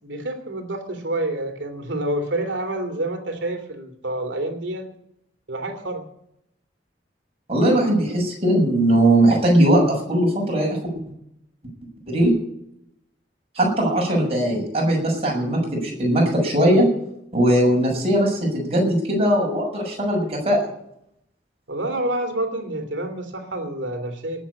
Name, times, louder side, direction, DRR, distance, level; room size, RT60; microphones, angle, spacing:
voice 1, 0.0-4.8 5.5-6.0 21.7-24.4, right 1 dB, 90° right, 7 dB, 3.1 m, -28 dB
voice 2, 7.5-10.8 12.1-12.3 13.5-16.9 17.3-20.6, right 1 dB, 35° right, -1 dB, 6.7 m, -19 dB
19.0 x 7.7 x 8.6 m, 0.75 s
head